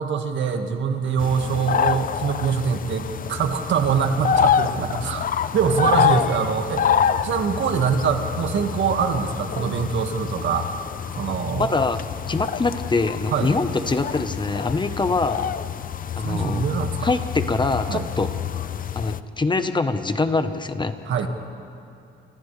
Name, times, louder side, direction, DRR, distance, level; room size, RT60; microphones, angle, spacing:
voice 1, 0.0-5.3 5.5-6.9 7.2-10.7 11.2-11.7 13.3-13.5 16.2-17.1 17.9-18.1 21.1-21.3, right 6 dB, 70° right, 5 dB, 1.9 m, -24 dB
sound 1, 1.2-19.2, left 8 dB, 45° left, 0.7 m, -26 dB
voice 2, 11.5-12.0 12.3-15.5 16.2-16.6 17.0-18.3 18.9-20.9, left 3 dB, 25° left, 9 dB, 1.1 m, -24 dB
29.5 x 26.0 x 3.4 m, 2.6 s
cardioid pair, 90°, 20 cm